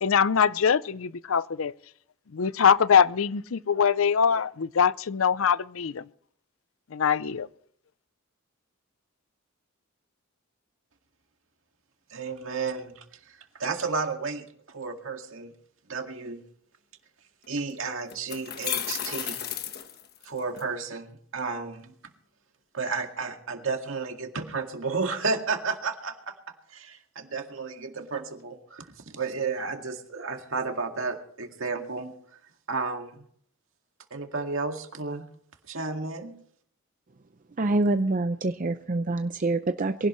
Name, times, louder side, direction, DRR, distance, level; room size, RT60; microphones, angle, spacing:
voice 1, 0.0-1.7 2.3-6.0 6.9-7.5, left 7 dB, 70° left, 0.5 m, -23 dB
voice 2, 12.1-15.5 15.9-16.4 17.5-19.4 20.2-21.9 22.7-32.1 32.7-33.2 34.1-35.3 35.7-36.4, right 4 dB, 65° right, 2.1 m, -32 dB
sound 1, 17.4-17.5 18.1-20.6, left 10 dB, 50° left, 1.2 m, -33 dB
voice 3, 37.6-40.1, right 2 dB, 40° right, 0.6 m, -26 dB
23.0 x 17.0 x 3.2 m
head